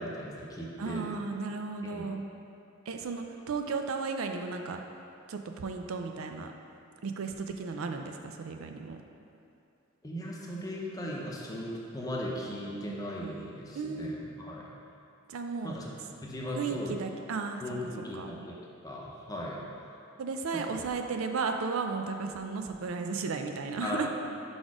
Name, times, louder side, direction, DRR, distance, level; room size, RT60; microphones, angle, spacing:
voice 1, 0.0-1.1 1.8-2.0 10.0-14.7 15.6-15.9 16.2-17.0 17.6-18.5 18.8-19.9 20.5-20.7 23.8-24.1, equal, 20° left, -3 dB, 0.7 m, -37 dB
voice 2, 0.8-2.2 2.9-4.8 5.3-6.5 7.0-9.0 13.8-14.2 15.3-15.7 16.5-17.6 18.1-18.3 20.2-24.1, right 4 dB, 80° right, 5 dB, 0.4 m, -34 dB
5.0 x 4.2 x 4.8 m, 2.6 s
head